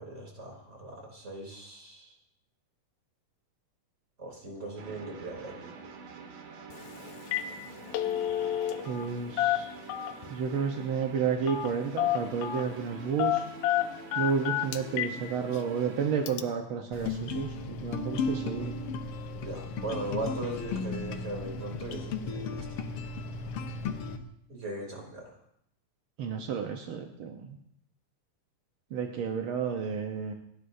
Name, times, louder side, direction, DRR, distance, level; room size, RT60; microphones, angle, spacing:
voice 1, 0.0-2.1 4.2-5.7 19.4-22.8 24.5-25.2, right 2 dB, 20° right, 0 dB, 3.3 m, -39 dB
sound 1, 4.8-16.3, right 4 dB, 85° right, 3.2 m, -46 dB
Telephone, 6.7-6.9 7.2-7.5 7.8-9.1 9.4-10.3 11.5-11.7 12.0-12.7 13.2-15.2 15.6-15.7 16.3-16.4, left 12 dB, 85° left, 2.3 m, -29 dB
voice 2, 8.9-9.7 10.3-13.4 14.2-18.7 26.2-27.6 28.9-30.3, right 6 dB, 70° right, 3 dB, 1.2 m, -31 dB
sound 2, 16.9-24.2, left 4 dB, 65° left, 1.7 m, -35 dB
28.5 x 11.5 x 2.7 m, 0.73 s
omnidirectional pair, 3.7 m